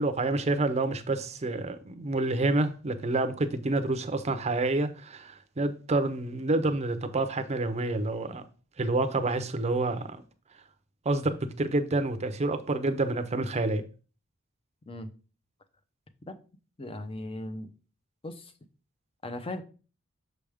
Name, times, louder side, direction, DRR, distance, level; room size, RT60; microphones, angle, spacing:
voice 1, 0.0-8.4 8.8-10.2 11.1-13.8, right 2 dB, 30° right, 0.6 m, -28 dB
voice 2, 16.8-17.7 18.2-18.5 19.2-19.6, left 1 dB, 25° left, 0.6 m, -37 dB
6.4 x 5.0 x 3.4 m
head